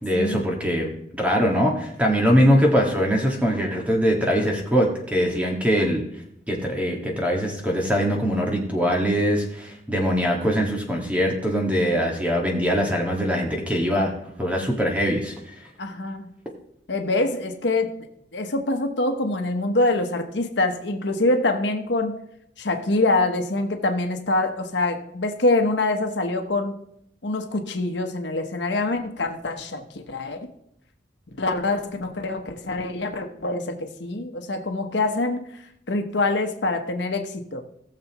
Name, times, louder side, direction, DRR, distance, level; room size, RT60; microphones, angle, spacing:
voice 1, 0.0-6.0 6.5-15.3, equal, 5° right, 0 dB, 1.8 m, -22 dB
voice 2, 15.8-16.3 16.9-17.9 18.3-22.2 22.6-26.8 27.2-30.5 31.4-35.5 35.9-37.6, left 2 dB, 75° left, 5 dB, 1.1 m, -25 dB
18.5 x 6.8 x 3.1 m, 0.75 s
head